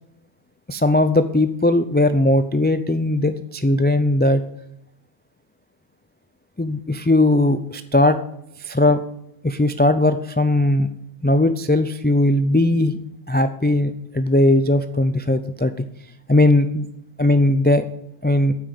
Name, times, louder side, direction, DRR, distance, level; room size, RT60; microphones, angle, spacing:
voice 1, 0.7-4.4 6.6-8.2 8.6-9.0 9.4-10.9 11.2-13.0 13.3-15.8 16.3-16.9 17.2-17.8 18.2-18.5, left 1 dB, 15° left, 10 dB, 0.4 m, -18 dB
9.3 x 8.6 x 7.8 m, 0.78 s
omnidirectional pair, 1.1 m